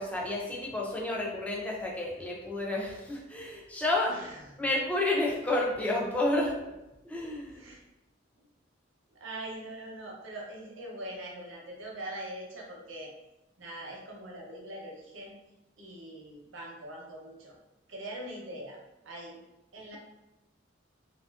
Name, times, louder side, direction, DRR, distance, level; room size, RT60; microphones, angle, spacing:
voice 1, 0.0-4.1 4.6-6.6 7.0-7.7, left 2 dB, 5° left, -3 dB, 0.3 m, -30 dB
voice 2, 4.1-4.5 7.5-7.8 8.4-8.5 9.1-13.1 13.6-15.3 15.8-17.6 17.9-18.8 19.0-19.4 19.7-20.0, right 1 dB, 80° right, -2 dB, 0.7 m, -42 dB
2.5 x 2.4 x 2.3 m, 0.94 s
head